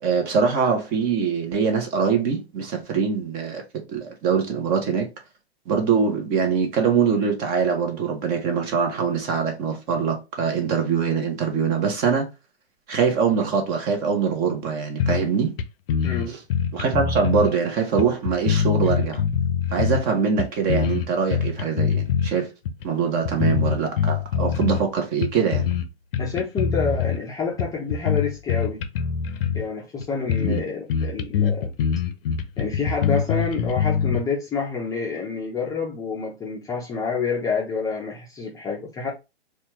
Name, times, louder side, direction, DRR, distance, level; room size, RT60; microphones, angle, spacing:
voice 1, 0.0-5.1 5.7-12.3 12.9-15.5 16.3-16.4 16.7-19.2 19.7-22.5 22.8-25.6 30.4-30.6, right 6 dB, 30° right, 0.9 m, -23 dB
sound 1, 15.0-15.3 15.6-15.7 15.9-17.5 18.0-20.1 20.4-22.3 22.7-22.8 23.2-24.9 25.2-25.9 26.1-27.2 27.6-29.7 30.0-30.1 30.3-30.6 30.9-34.2, left 7 dB, 60° left, 0.6 m, -24 dB
voice 2, 16.0-16.4 26.2-28.8 29.5-31.7 32.6-39.1, left 5 dB, 10° left, 0.6 m, -28 dB
4.2 x 2.4 x 2.9 m
hypercardioid pair, 125°, 32 cm